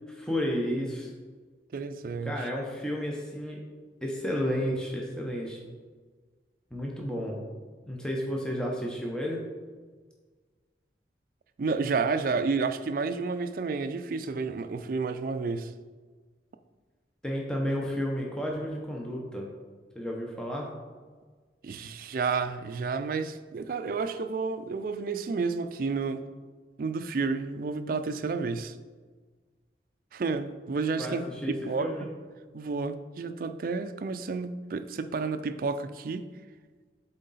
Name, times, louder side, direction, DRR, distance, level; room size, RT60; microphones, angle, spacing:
voice 1, 0.2-1.1 2.2-3.6 4.0-5.6 6.7-7.4 7.9-9.4 17.2-19.5 19.9-20.7 31.0-32.1, equal, 5° left, 0.7 m, -32 dB
voice 2, 1.7-2.5 11.6-15.7 21.6-26.3 26.8-28.8 30.1-31.3 31.6-32.1 32.5-36.3, right 4 dB, 50° right, 0.3 m, -31 dB
7.7 x 3.7 x 4.1 m
head